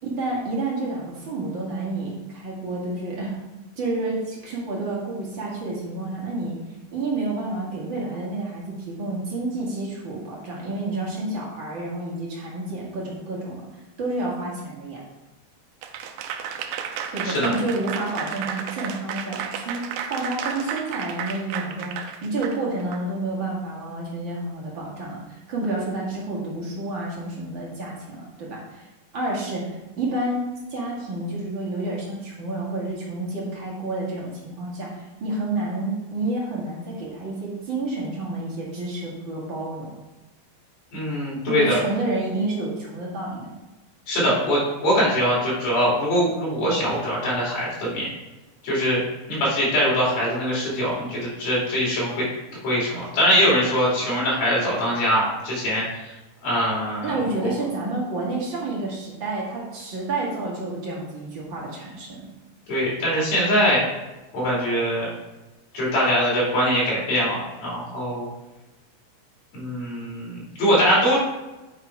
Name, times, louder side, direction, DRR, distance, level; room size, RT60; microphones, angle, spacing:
voice 1, 0.0-3.3 3.8-6.5 6.9-13.6 14.0-15.0 17.1-19.8 20.1-28.9 29.1-30.4 30.7-39.9 41.5-43.5 57.0-62.2, right 2 dB, 45° right, -4 dB, 1.8 m, -29 dB
Applause / Crowd, 15.8-23.0, right 7 dB, 80° right, 2.3 m, -32 dB
voice 2, 40.9-41.8 44.1-48.1 48.6-49.0 49.3-56.1 56.4-57.1 57.4-57.5 62.7-63.8 64.3-65.1 65.7-68.3 69.5-71.2, equal, 45° left, -6 dB, 4.1 m, -22 dB
8.9 x 5.0 x 4.7 m, 1.1 s
omnidirectional pair, 4.5 m